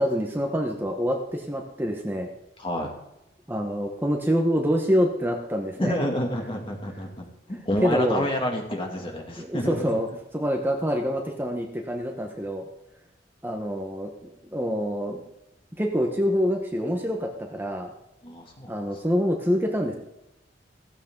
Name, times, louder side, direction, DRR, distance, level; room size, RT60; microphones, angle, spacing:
voice 1, 0.0-2.3 3.5-6.0 7.5-8.2 9.4-10.1 10.3-12.7 13.4-14.1 14.4-15.2 15.8-17.9 18.7-20.0, equal, 10° right, 1 dB, 1.3 m, -26 dB
voice 2, 2.6-2.9 5.8-7.3 7.6-9.9 18.2-18.7, equal, 30° left, 1 dB, 2.8 m, -28 dB
15.5 x 15.0 x 4.0 m, 0.87 s
head